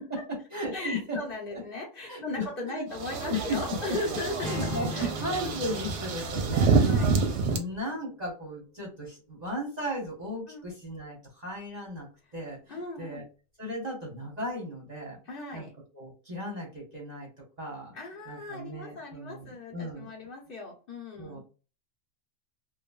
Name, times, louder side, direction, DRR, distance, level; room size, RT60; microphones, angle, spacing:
voice 1, 0.0-1.2 1.5-1.6 2.1-2.9 3.2-4.0 4.4-7.0 7.5-12.1 12.3-13.2 13.6-15.2 15.5-15.7 15.9-17.3 17.6-18.0 18.3-20.1 21.2-21.4, left 1 dB, 40° right, -2 dB, 0.8 m, -36 dB
voice 2, 0.7-5.1 5.4-5.6 6.8-7.2 10.5-10.7 12.7-13.2 15.2-15.7 17.9-21.4, left 2 dB, 50° left, -2 dB, 0.8 m, -38 dB
sound 1, 2.9-7.6, right 4 dB, 65° right, 0.8 m, -27 dB
sound 2, 4.4-8.6, left 2 dB, 80° left, 1.0 m, -42 dB
3.1 x 2.1 x 2.2 m, 0.35 s
omnidirectional pair, 1.3 m